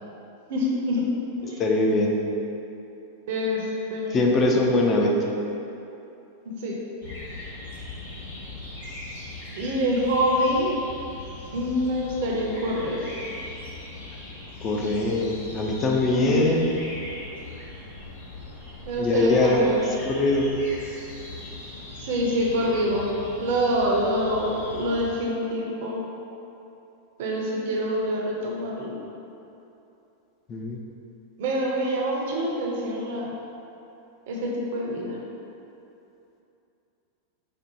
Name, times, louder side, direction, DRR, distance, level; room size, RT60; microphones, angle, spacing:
voice 1, 0.5-1.1 1.4-1.6 3.3-3.6 3.9-4.3 6.6-6.8 9.5-10.7 11.5-13.1 16.1-16.4 18.9-19.8 22.0-23.1 23.4-26.0 27.2-29.0 31.4-33.3 34.3-35.2, equal, 55° right, -2 dB, 0.6 m, -26 dB
voice 2, 1.6-2.2 4.1-5.1 14.6-16.7 19.0-19.6 20.0-20.5 30.5-30.8, left 2 dB, 25° left, 0 dB, 0.4 m, -22 dB
sound 1, 7.0-25.1, left 2 dB, 65° left, 1.1 m, -39 dB
4.9 x 2.1 x 3.0 m, 2.8 s
figure-of-eight pair, 90°, 0 cm